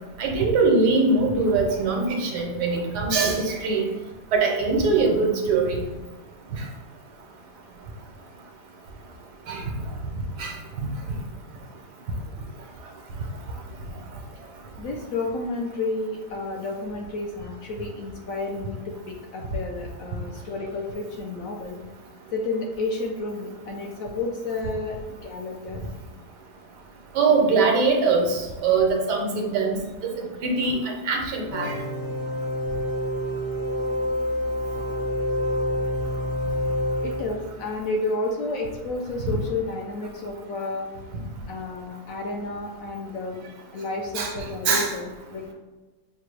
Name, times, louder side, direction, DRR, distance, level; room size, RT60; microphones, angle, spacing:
voice 1, 0.2-3.9 4.3-5.8 9.5-9.6 10.4-10.5 27.1-29.8 30.2-30.8 31.1-31.7 39.2-39.3 44.1-44.3 44.7-44.9, right 4 dB, 80° right, 1 dB, 1.4 m, -22 dB
voice 2, 14.8-21.8 22.3-25.8 37.0-40.9 41.5-43.4 43.7-45.5, left 2 dB, 65° left, 0 dB, 0.9 m, -31 dB
sound 1, 31.5-37.6, equal, 30° left, 0.4 m, -27 dB
5.7 x 2.3 x 3.3 m, 1.2 s
omnidirectional pair, 1.8 m